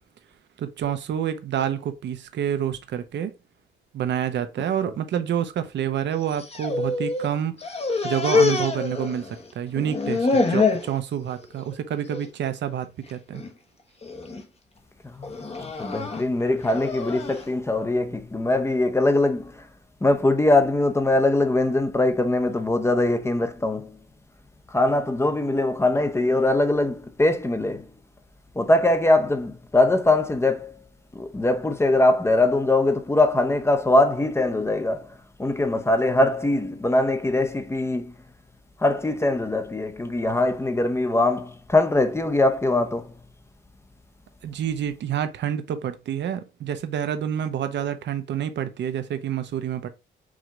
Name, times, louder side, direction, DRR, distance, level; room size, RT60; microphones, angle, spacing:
voice 1, 0.6-3.3 3.9-7.6 8.0-13.4 44.4-49.9, right 9 dB, 65° right, 0.8 m, -28 dB
sound 1, 6.2-7.3 7.6-9.5 9.8-10.9 11.4-11.7 12.1-12.3 13.1-13.5 14.0-14.4 15.2-17.4, left 4 dB, 30° left, 1.1 m, -25 dB
voice 2, 15.6-19.7 20.0-24.0 24.7-27.9 28.5-30.8 31.1-38.1 38.8-43.2, left 2 dB, 15° left, 0.7 m, -22 dB
4.9 x 2.8 x 3.6 m
cardioid pair, 90°, 20 cm